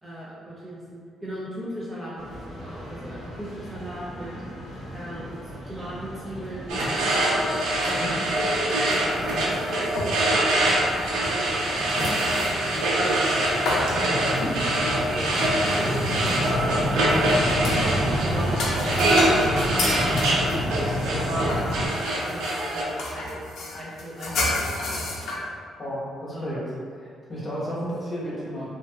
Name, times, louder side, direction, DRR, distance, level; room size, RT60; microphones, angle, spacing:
voice 1, 0.0-5.3 5.7-7.3 7.8-8.4 8.7-9.9 10.3-10.5 11.2-12.0 12.3-14.3 15.8-20.2 20.8-21.0 21.3-23.4 23.8-25.4 26.3-26.6 27.7-27.9, right 1 dB, 25° right, -8 dB, 0.5 m, -39 dB
sound 1, 2.2-21.9, equal, 60° right, 0.8 m, -31 dB
sound 2, 6.7-22.8, right 1 dB, 90° right, 0.4 m, -24 dB
sound 3, 9.2-10.4 10.7-10.9 11.5-16.1 16.4-17.9 18.3-25.4, left 2 dB, 75° left, 0.4 m, -31 dB
voice 2, 13.9-14.3 25.8-26.6 27.0-28.7, equal, 25° left, -9 dB, 1.0 m, -33 dB
2.6 x 2.2 x 2.2 m, 2.1 s
cardioid pair, 90°, 0 cm